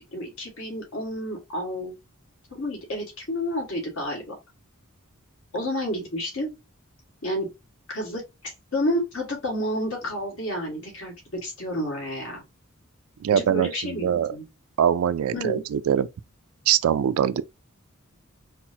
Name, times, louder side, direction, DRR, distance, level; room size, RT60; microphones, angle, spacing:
voice 1, 0.1-1.9 2.5-4.3 5.5-6.5 7.2-7.5 7.9-12.4 13.3-14.4 15.3-15.6, equal, 70° left, 1.6 m, -30 dB
voice 2, 13.2-14.3 14.8-16.1 16.7-17.4, right 9 dB, 75° right, 0.3 m, -23 dB
4.2 x 2.1 x 2.7 m
head